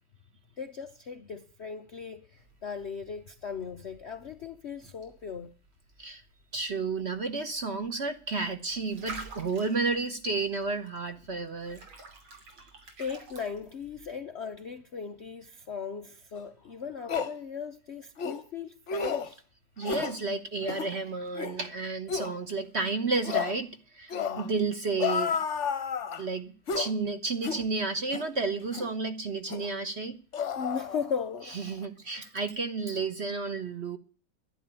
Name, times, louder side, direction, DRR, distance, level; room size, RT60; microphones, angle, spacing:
voice 1, 0.6-5.5 12.3-19.4 24.1-24.5 30.6-31.5 32.1-32.3, left 6 dB, 90° left, 0.5 m, -38 dB
sound 1, 2.4-14.1, right 3 dB, 75° right, 3.8 m, -50 dB
voice 2, 6.5-11.8 19.8-25.4 26.2-30.2 31.5-34.0, right 3 dB, 45° right, 1.0 m, -31 dB
sound 2, 16.4-16.5 17.1-17.3 18.2-18.4 18.9-19.3 19.8-20.2 20.6-20.9 21.3-21.6 22.1-22.3 23.2-23.6 24.1-24.5 25.0-26.2 26.7-26.9 27.4-27.6 28.1-28.3 28.7-28.9 29.5-29.7 30.3-31.4 31.7-31.9, left 6 dB, 50° left, 1.0 m, -31 dB
11.0 x 11.0 x 8.8 m
omnidirectional pair, 2.3 m